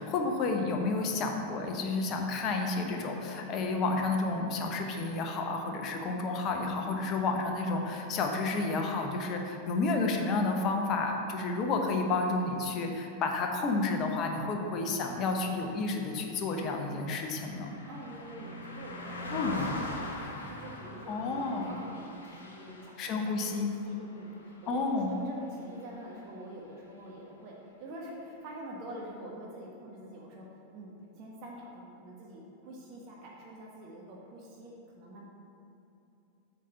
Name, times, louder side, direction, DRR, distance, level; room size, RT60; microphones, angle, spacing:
voice 1, 0.0-17.7 19.3-19.6 21.1-21.8 23.0-23.7 24.7-25.1, left 3 dB, 35° left, 3 dB, 0.9 m, -31 dB
Car passing by, 15.8-25.4 25.8-26.0, left 2 dB, 70° left, 0.9 m, -42 dB
voice 2, 17.9-23.1 23.5-30.5 30.7-35.3, right 1 dB, 40° right, -3 dB, 1.3 m, -46 dB
8.4 x 4.1 x 5.6 m, 2.8 s
figure-of-eight pair, 90°, 0 cm